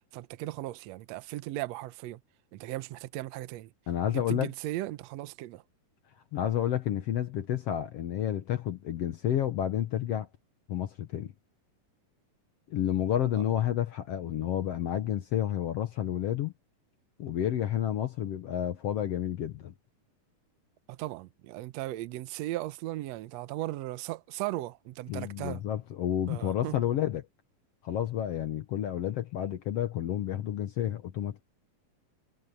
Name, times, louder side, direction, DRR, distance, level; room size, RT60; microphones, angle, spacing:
voice 1, 0.1-2.2 2.5-3.7 4.1-5.6 13.3-13.4 20.9-25.6 26.3-26.8, right 16 dB, 75° right, 1.6 m, -37 dB
voice 2, 3.9-4.5 6.3-10.3 10.7-11.3 12.7-16.5 17.2-19.7 25.1-27.3 27.8-31.4, left 11 dB, 65° left, 1.6 m, -30 dB
omnidirectional pair, 3.9 m